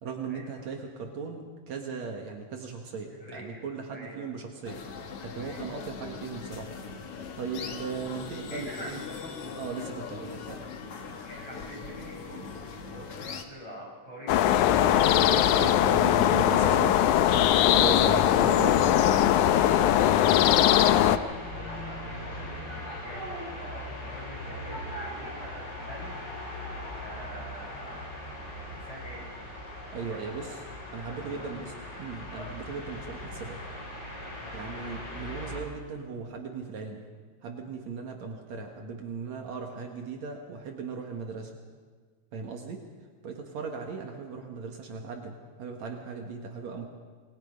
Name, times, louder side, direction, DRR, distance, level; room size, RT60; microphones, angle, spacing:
voice 1, 0.0-4.8 5.2-6.7 7.4-9.0 9.6-10.7 15.2-17.0 17.7-18.7 29.9-30.6 30.9-31.7 32.0-33.6 34.5-37.0 37.4-41.5 42.3-42.8 43.2-46.9, right 5 dB, 70° right, 2 dB, 2.9 m, -37 dB
voice 2, 3.1-3.6 3.9-4.3 5.4-5.7 7.6-7.8 8.5-9.6 11.2-14.4 18.3-18.9 19.1-26.2 27.0-28.0 28.7-29.3 29.9-30.6 31.1-32.0 34.4-34.6, equal, 10° left, -4 dB, 7.3 m, -46 dB
sound 1, 4.6-13.4, left 5 dB, 55° left, 2.3 m, -40 dB
sound 2, 14.3-21.2, left 11 dB, 85° left, 2.2 m, -21 dB
sound 3, 19.4-35.6, left 1 dB, 35° left, 5.9 m, -39 dB
27.5 x 21.0 x 5.4 m, 1.5 s
omnidirectional pair, 3.4 m